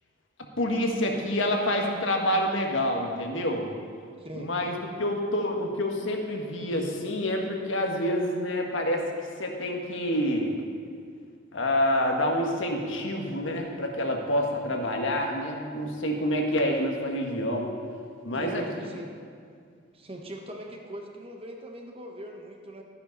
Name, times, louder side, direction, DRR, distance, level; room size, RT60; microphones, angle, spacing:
voice 1, 0.6-3.7 4.4-9.0 9.4-10.5 11.5-17.7 18.2-18.9, left 1 dB, 75° left, 1 dB, 1.5 m, -27 dB
voice 2, 4.2-4.5 18.3-19.1 19.9-22.8, right 1 dB, 30° right, 2 dB, 1.1 m, -41 dB
13.5 x 10.5 x 4.1 m, 2.1 s
head